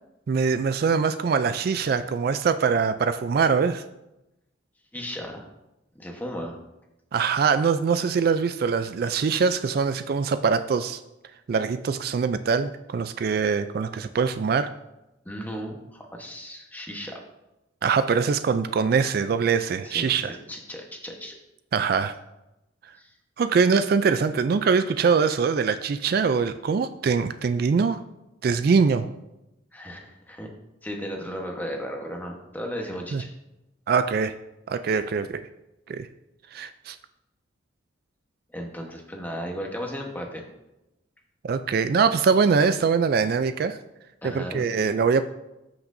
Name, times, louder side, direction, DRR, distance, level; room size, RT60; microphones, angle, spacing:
voice 1, 0.3-3.8 7.1-11.0 11.5-14.7 17.8-20.4 21.7-22.1 23.4-28.0 28.4-29.1 33.1-33.2 33.9-34.3 34.7-35.4 35.9-36.1 36.5-37.0 41.4-43.8 44.2-45.2, right 5 dB, 50° right, 11 dB, 0.3 m, -23 dB
voice 2, 4.9-5.5 5.9-6.6 15.2-17.2 19.8-21.4 23.0-23.1 29.7-30.5 30.8-33.3 38.5-40.4 44.2-44.6, equal, 10° left, 1 dB, 1.0 m, -35 dB
13.5 x 5.9 x 2.6 m, 0.94 s
head